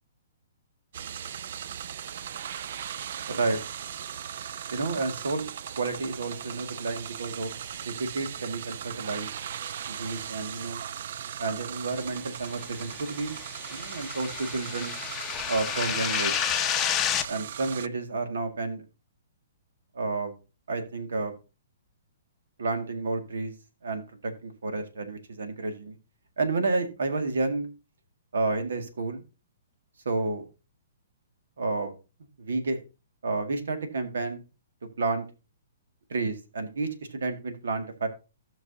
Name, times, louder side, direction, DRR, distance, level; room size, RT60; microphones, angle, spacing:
sound 1, 0.9-17.9, right 9 dB, 55° right, 0.4 m, -38 dB
voice 1, 3.3-3.6 4.7-5.5 5.8-7.5 7.8-9.3 9.9-10.8 11.4-13.4 13.7-14.9 15.5-16.3 17.3-18.8 19.9-20.3 20.7-21.3 22.6-23.5 23.8-26.0 26.4-27.7 28.3-29.2 30.1-30.5 31.6-31.9 32.4-32.8 33.2-34.4 35.0-35.3 36.1-38.1, right 3 dB, 85° right, 7 dB, 1.9 m, -30 dB
sound 2, 12.8-17.3, left 10 dB, 15° left, 0.7 m, -30 dB
15.5 x 6.0 x 2.7 m, 0.30 s
hypercardioid pair, 160°, 0 cm